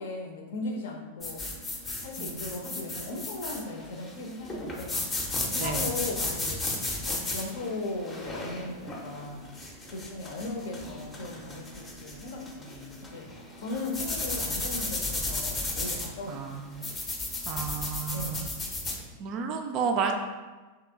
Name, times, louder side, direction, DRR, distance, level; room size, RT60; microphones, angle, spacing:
voice 1, 0.0-1.4 2.0-5.0 5.5-6.7 7.0-9.5 9.9-13.3 13.6-16.9 18.1-18.6 19.9-20.0, left 2 dB, 55° left, 2 dB, 0.6 m, -37 dB
sound 1, 1.2-19.0, left 2 dB, 20° left, 0.6 m, -34 dB
voice 2, 2.2-2.8 5.6-5.9 16.3-16.8 17.5-18.5 19.2-20.1, right 6 dB, 35° right, 3 dB, 0.3 m, -32 dB
2.9 x 2.9 x 3.5 m, 1.3 s
figure-of-eight pair, 90°, 0 cm